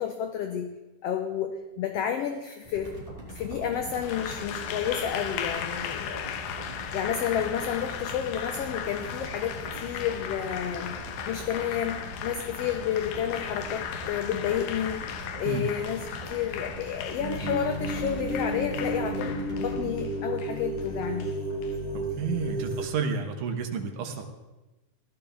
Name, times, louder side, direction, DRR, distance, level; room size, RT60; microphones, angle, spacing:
voice 1, 0.0-2.9 3.3-6.3 6.9-15.1 15.4-21.4, left 9 dB, 70° left, 6 dB, 1.6 m, -31 dB
sound 1, 2.6-19.8, equal, 10° left, 4.8 m, -41 dB
Applause, 3.9-21.7, left 8 dB, 85° left, 2.3 m, -37 dB
sound 2, 17.2-22.9, right 1 dB, 50° right, 0.7 m, -32 dB
voice 2, 21.9-24.3, right 5 dB, 80° right, 3 dB, 2.6 m, -31 dB
16.5 x 12.5 x 3.5 m, 1.1 s
omnidirectional pair, 3.4 m